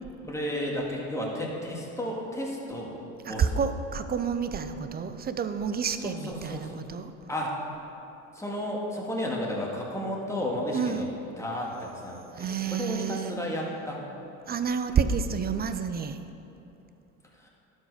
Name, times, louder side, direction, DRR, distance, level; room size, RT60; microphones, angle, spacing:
voice 1, 0.2-2.9 3.3-3.5 6.0-6.7 7.3-7.6 8.3-11.1 11.4-14.0 17.4-17.5, left 1 dB, 10° left, -3 dB, 2.0 m, -33 dB
voice 2, 3.3-7.1 10.7-11.0 12.4-13.3 14.5-16.2, right 6 dB, 25° right, 10 dB, 0.5 m, -29 dB
12.0 x 5.4 x 4.9 m, 2.9 s
hypercardioid pair, 80°, 37 cm